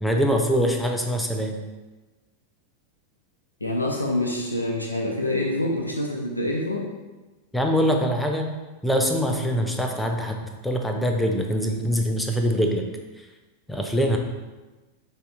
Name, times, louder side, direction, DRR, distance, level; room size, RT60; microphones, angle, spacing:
voice 1, 0.0-1.6 7.5-8.5 8.8-12.8 13.7-14.2, equal, 5° left, 3 dB, 0.5 m, -23 dB
voice 2, 3.6-6.9, left 1 dB, 85° left, -1 dB, 0.5 m, -26 dB
6.7 x 2.8 x 2.4 m, 1.2 s
figure-of-eight pair, 90°, 0 cm